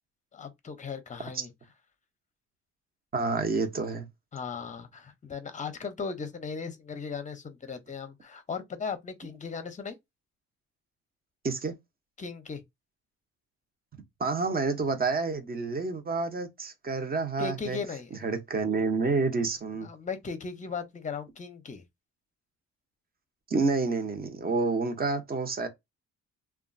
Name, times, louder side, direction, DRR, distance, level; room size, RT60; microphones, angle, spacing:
voice 1, 0.3-1.5 4.3-10.0 12.2-12.6 17.4-18.1 19.8-21.8, left 5 dB, 25° left, 0.7 m, -37 dB
voice 2, 3.1-4.1 11.4-11.7 13.9-17.8 18.2-19.9 23.5-25.7, right 3 dB, 30° right, 0.8 m, -29 dB
2.8 x 2.3 x 2.6 m
cardioid pair, 90°, 30 cm